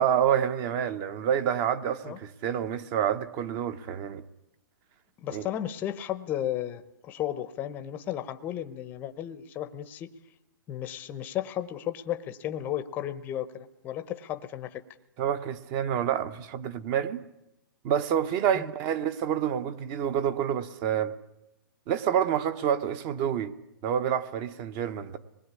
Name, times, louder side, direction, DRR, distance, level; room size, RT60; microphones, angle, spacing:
voice 1, 0.0-4.2 5.3-5.5 15.2-17.2 17.8-21.1 21.9-23.5 23.8-25.2, right 9 dB, 25° right, 1.0 m, -28 dB
voice 2, 5.2-10.1 10.7-14.8 18.5-18.6, left 11 dB, 15° left, 0.8 m, -34 dB
25.5 x 20.5 x 9.6 m
hypercardioid pair, 165°, 12 cm